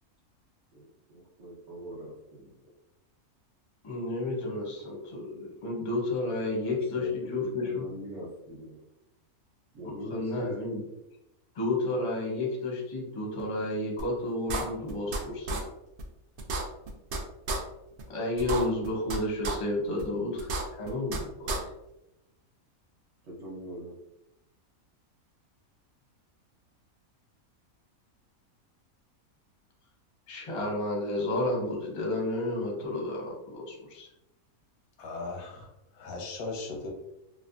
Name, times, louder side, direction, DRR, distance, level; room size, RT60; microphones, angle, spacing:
voice 1, 0.7-2.5 6.4-7.1 7.4-8.8 9.7-10.5 23.2-24.0, equal, 60° right, -5 dB, 1.0 m, -43 dB
voice 2, 3.8-7.8 10.1-10.8 11.5-15.6 18.1-21.6 30.3-34.1, left 2 dB, 35° left, -1 dB, 0.5 m, -31 dB
sound 1, 14.0-14.1 14.5-15.2 15.5-15.6 16.0-16.1 16.4-17.2 17.5-17.6 18.0-18.1 18.4-19.2 19.4-19.6 20.0-20.1 20.4-21.2 21.5-21.6, right 2 dB, 90° right, 0.4 m, -31 dB
voice 3, 35.0-36.9, left 3 dB, 90° left, 0 dB, 1.2 m, -38 dB
3.2 x 2.1 x 2.5 m, 0.88 s
omnidirectional pair, 1.5 m